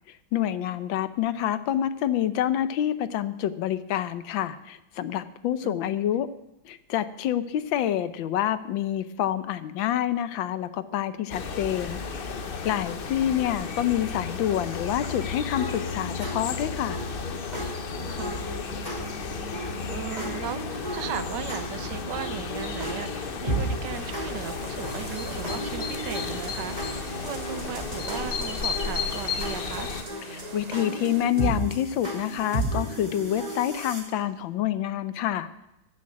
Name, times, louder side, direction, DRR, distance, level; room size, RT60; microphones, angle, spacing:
voice 1, 0.3-6.3 6.6-12.0 12.6-17.0 30.2-35.5, left 11 dB, 75° left, 13 dB, 1.5 m, -27 dB
voice 2, 5.6-6.0 18.0-18.4 19.9-29.9, right 9 dB, 70° right, 13 dB, 1.2 m, -37 dB
sound 1, 11.3-30.0, left 5 dB, 50° left, 0.6 m, -33 dB
sound 2, 15.6-34.0, right 1 dB, 20° right, 2.9 m, -35 dB
sound 3, 23.9-31.3, right 4 dB, 40° right, 0.5 m, -44 dB
14.0 x 6.5 x 9.7 m, 0.91 s
omnidirectional pair, 2.1 m